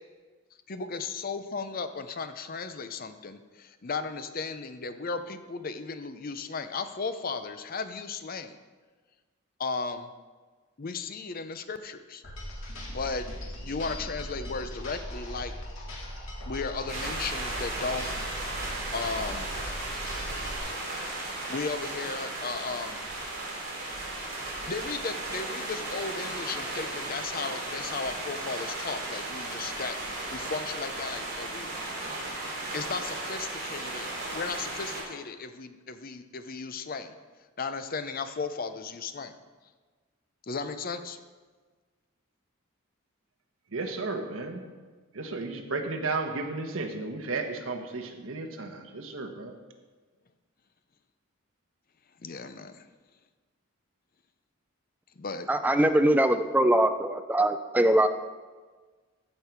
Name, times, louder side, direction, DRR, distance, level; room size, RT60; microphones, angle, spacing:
voice 1, 0.7-8.6 9.6-10.1 10.8-12.2 12.9-13.3 13.6-15.5 16.5-18.1 18.9-19.5 21.5-23.0 24.7-32.0 32.7-34.1 34.3-37.1 37.6-39.3 40.5-41.2 52.2-52.9 55.2-55.5, left 4 dB, 45° left, 10 dB, 0.6 m, -35 dB
sound 1, 12.2-20.6, left 1 dB, 75° left, 2.1 m, -39 dB
sound 2, 16.9-35.0, right 2 dB, 45° right, 3.1 m, -35 dB
voice 2, 43.7-44.6 45.1-49.5, right 3 dB, 70° right, 4 dB, 1.2 m, -33 dB
voice 3, 55.5-58.1, right 1 dB, 10° right, 8 dB, 0.4 m, -22 dB
15.0 x 5.3 x 4.6 m, 1.4 s
head